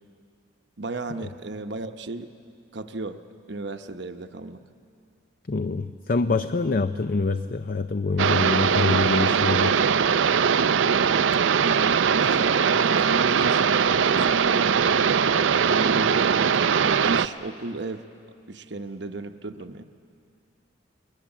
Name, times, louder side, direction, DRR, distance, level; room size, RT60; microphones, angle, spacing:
voice 1, 0.8-2.3 2.7-3.2 3.5-4.6 11.6-15.0 15.6-18.0 18.5-19.8, right 2 dB, 65° right, 8 dB, 1.0 m, -34 dB
voice 2, 5.5-9.8, left 3 dB, 45° left, 10 dB, 0.5 m, -25 dB
sound 1, 8.2-17.3, right 6 dB, 80° right, 0.5 m, -21 dB
28.0 x 22.0 x 7.3 m, 2.4 s
head